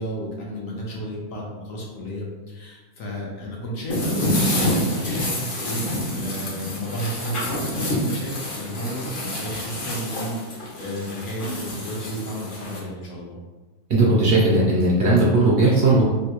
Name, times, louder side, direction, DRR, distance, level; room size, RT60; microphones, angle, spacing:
voice 1, 0.0-13.4, equal, 65° left, -3 dB, 1.1 m, -33 dB
sound 1, 3.9-12.8, left 1 dB, 45° left, 0.7 m, -27 dB
voice 2, 13.9-16.0, right 2 dB, 55° right, -5 dB, 0.8 m, -17 dB
3.3 x 2.7 x 2.9 m, 1.3 s
omnidirectional pair, 1.6 m